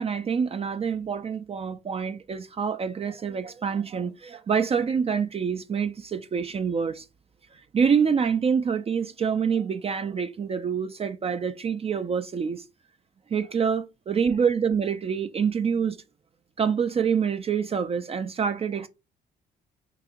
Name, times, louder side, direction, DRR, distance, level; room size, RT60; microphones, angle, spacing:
voice 1, 0.0-7.1 7.7-12.6 13.3-16.0 16.6-18.9, right 6 dB, 35° right, 0.4 m, -26 dB
4.7 x 2.7 x 2.5 m
supercardioid pair, 60°, 17 cm